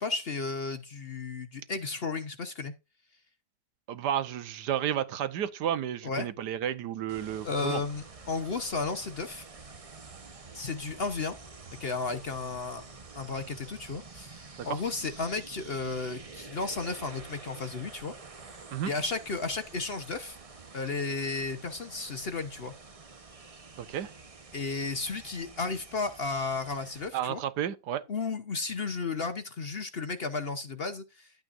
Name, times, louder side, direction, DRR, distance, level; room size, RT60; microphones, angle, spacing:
voice 1, 0.0-2.7 6.0-6.3 7.4-9.5 10.5-11.4 11.8-12.8 13.2-18.1 18.8-20.4 20.7-22.7 24.5-27.4 28.1-31.3, left 4 dB, 45° left, 0.8 m, -33 dB
voice 2, 3.9-7.8 14.6-14.8 18.7-18.9 23.8-24.1 27.1-28.0, right 10 dB, 75° right, 1.4 m, -32 dB
sound 1, 7.1-27.1, right 4 dB, 30° right, 0.7 m, -49 dB
11.5 x 8.7 x 2.5 m
omnidirectional pair, 1.8 m